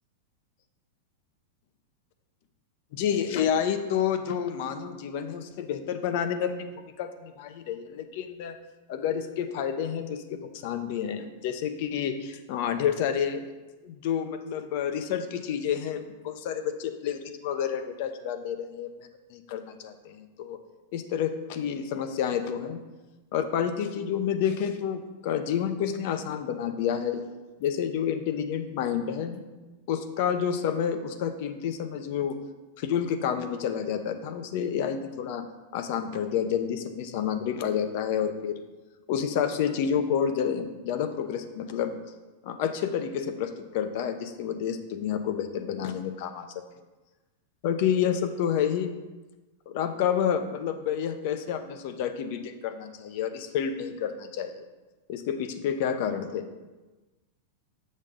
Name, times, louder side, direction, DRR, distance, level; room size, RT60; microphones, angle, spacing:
voice 1, 2.9-8.6 8.9-13.4 13.8-20.6 20.9-22.8 23.3-27.2 27.6-29.5 29.9-32.4 32.8-35.5 35.7-38.6 39.1-41.9 42.4-46.5 47.6-49.0 49.7-54.5 55.1-56.5, left 8 dB, 55° left, 9 dB, 0.8 m, -29 dB
7.4 x 6.4 x 3.7 m, 1.2 s
supercardioid pair, 140°, 0 cm